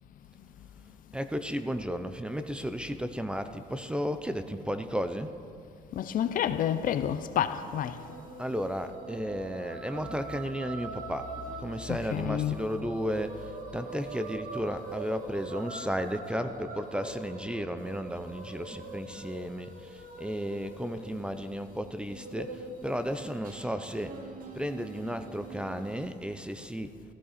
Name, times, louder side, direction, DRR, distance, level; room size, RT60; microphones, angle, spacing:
voice 1, 1.1-5.3 8.4-24.2 24.5-27.0, equal, 5° right, 9 dB, 0.5 m, -34 dB
voice 2, 5.9-8.0 11.9-12.6 16.9-17.1, left 9 dB, 55° left, 11 dB, 0.6 m, -29 dB
sound 1, 7.8-26.1, right 3 dB, 55° right, 1.6 m, -44 dB
15.0 x 13.5 x 4.2 m, 2.5 s
cardioid pair, 110°, 17 cm